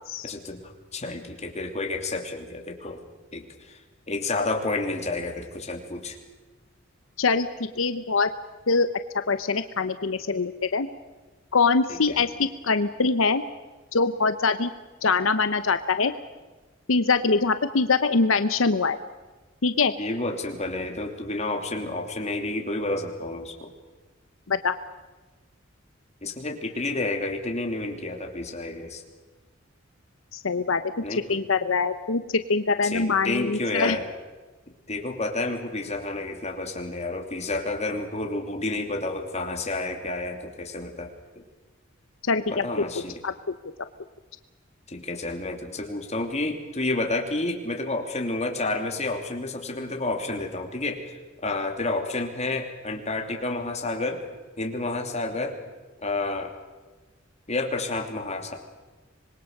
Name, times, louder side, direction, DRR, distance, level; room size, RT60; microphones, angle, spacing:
voice 1, 0.2-3.0 3.3-3.8 4.1-6.2 11.9-12.3 20.0-23.7 26.2-29.0 31.0-31.2 32.8-34.0 34.9-41.1 42.5-43.2 44.9-51.1 51.4-54.2 54.6-55.6 56.0-56.5 57.5-58.5, left 2 dB, 35° left, 3 dB, 2.9 m, -30 dB
voice 2, 7.2-8.3 8.7-8.9 9.3-10.9 11.5-13.4 13.9-14.7 15.0-16.1 16.9-19.0 19.6-19.9 24.5-24.7 30.3-30.9 31.3-34.0 42.3-42.6 43.2-43.5, left 4 dB, 85° left, 11 dB, 0.9 m, -23 dB
26.0 x 21.5 x 6.7 m, 1.2 s
head